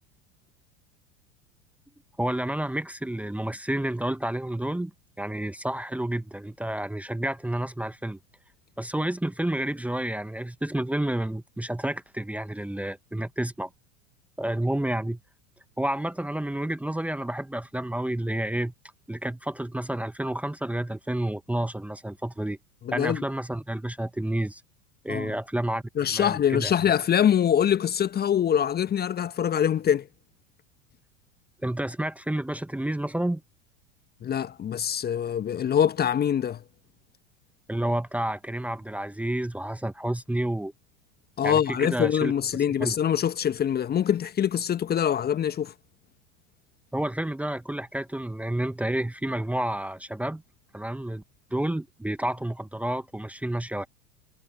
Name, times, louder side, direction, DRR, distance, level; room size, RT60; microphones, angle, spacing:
voice 1, 2.2-4.9 5.2-8.2 8.8-13.7 14.4-15.2 15.8-18.7 19.1-22.6 22.9-24.6 25.0-26.7 31.6-33.4 37.7-40.7 41.4-42.9 46.9-50.4 50.7-51.2 51.5-53.9, right 1 dB, 5° right, 1.5 m, -30 dB
voice 2, 22.8-23.2 25.1-25.3 26.0-30.1 34.2-36.6 41.4-45.7, left 9 dB, 25° left, 1.5 m, -24 dB
figure-of-eight pair, 85°, 38 cm